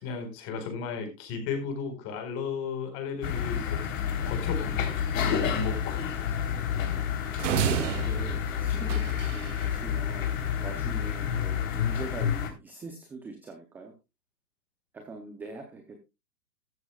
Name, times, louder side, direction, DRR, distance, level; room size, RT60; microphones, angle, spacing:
voice 1, 0.0-3.9 4.2-6.0, left 5 dB, 30° left, 5 dB, 4.6 m, -34 dB
sound 1, 3.2-12.5, left 8 dB, 50° left, 3.7 m, -29 dB
voice 2, 6.6-7.1 7.4-10.3 10.6-13.9 14.9-15.9, right 3 dB, 5° right, 4 dB, 0.6 m, -42 dB
sound 2, 7.4-9.6, right 10 dB, 45° right, 1.2 m, -31 dB
14.0 x 12.0 x 2.4 m, 0.26 s
hypercardioid pair, 140°, 50 cm